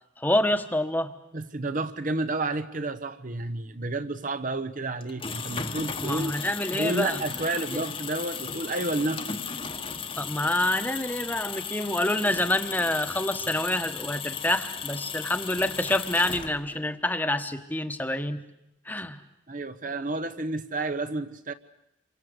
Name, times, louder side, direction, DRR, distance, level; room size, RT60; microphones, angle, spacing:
voice 1, 0.2-1.1 6.0-7.2 7.5-7.8 10.2-18.4 18.9-19.2, left 1 dB, 10° left, 1.3 m, -27 dB
voice 2, 1.3-6.3 6.8-9.4 19.5-21.5, right 2 dB, 40° right, 1.1 m, -30 dB
sound 1, 5.0-16.8, left 6 dB, 25° left, 1.3 m, -36 dB
28.0 x 24.5 x 8.0 m
head